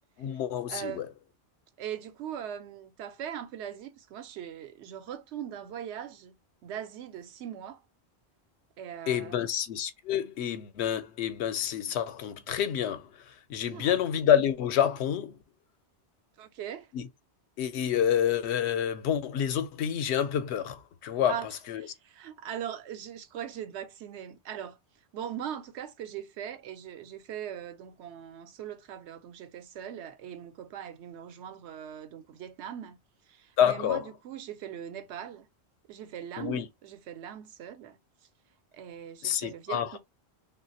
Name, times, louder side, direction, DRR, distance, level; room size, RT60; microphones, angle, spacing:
voice 1, 0.2-1.1 9.1-13.1 13.5-15.3 16.9-17.1 17.6-21.4 21.7-21.9 33.6-34.0 36.4-36.7 39.2-40.0, left 9 dB, 80° left, 0.9 m, -28 dB
voice 2, 0.7-1.1 1.8-6.4 6.6-7.8 8.8-9.5 13.7-14.0 16.4-16.9 21.2-21.5 21.8-24.8 25.1-33.0 33.3-35.5 35.9-38.0 38.7-40.0, right 9 dB, 85° right, 0.9 m, -40 dB
3.1 x 2.4 x 2.6 m
omnidirectional pair, 1.1 m